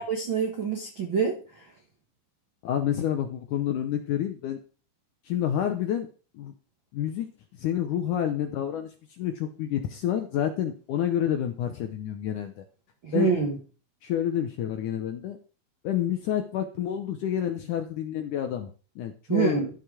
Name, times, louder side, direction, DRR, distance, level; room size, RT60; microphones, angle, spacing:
voice 1, 0.0-1.4 13.0-13.6 19.3-19.7, right 5 dB, 60° right, 1 dB, 1.2 m, -26 dB
voice 2, 2.6-4.6 5.2-6.1 6.3-6.5 6.9-7.3 7.6-12.6 13.1-13.3 14.0-15.4 15.8-19.6, left 10 dB, 75° left, 6 dB, 1.9 m, -29 dB
14.0 x 5.9 x 4.9 m, 0.37 s
omnidirectional pair, 4.6 m